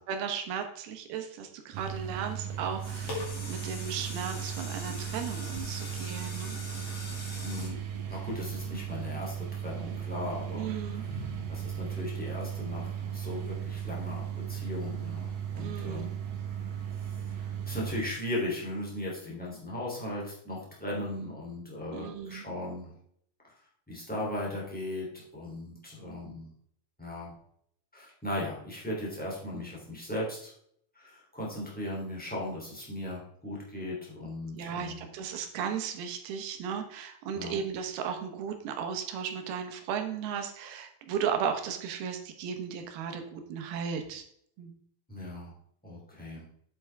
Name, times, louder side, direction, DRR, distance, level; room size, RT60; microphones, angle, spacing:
voice 1, 0.1-6.6 10.5-11.0 15.6-16.1 21.9-22.5 34.5-44.2 44.6-44.8, right 7 dB, 85° right, 6 dB, 3.0 m, -35 dB
sound 1, 1.7-18.0, right 9 dB, 65° right, 1.7 m, -36 dB
sound 2, 2.5-8.8 9.3-9.4, left 2 dB, 35° left, 2.8 m, -42 dB
voice 2, 7.4-7.8 8.1-16.1 16.5-16.6 17.3-22.9 23.9-26.5 27.0-27.3 27.9-30.5 30.9-35.0 37.3-37.6 45.1-45.5 45.8-46.4, left 1 dB, 5° left, -4 dB, 2.3 m, -37 dB
8.6 x 8.1 x 3.4 m, 0.68 s
omnidirectional pair, 4.3 m